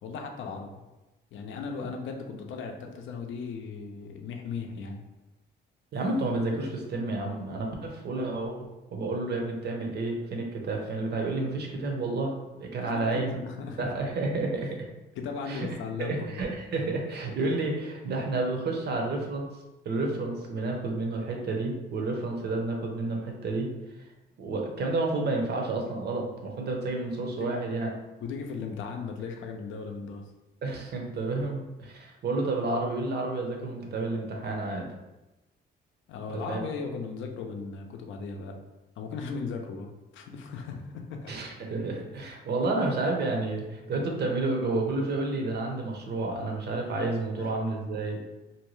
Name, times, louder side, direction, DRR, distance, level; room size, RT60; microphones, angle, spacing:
voice 1, 0.0-0.8 1.3-5.0 12.8-13.9 15.2-16.5 27.4-27.6 28.2-30.2 36.1-38.6 39.0-41.4 47.4-47.5, left 5 dB, 75° left, 3 dB, 0.5 m, -37 dB
voice 2, 5.9-13.4 13.8-14.8 15.5-15.7 16.0-19.5 19.8-23.7 24.4-27.9 30.6-34.9 36.5-36.6 41.3-48.2, right 2 dB, 55° right, 1 dB, 0.7 m, -30 dB
2.7 x 2.2 x 3.0 m, 1.0 s
cardioid pair, 90°, 20 cm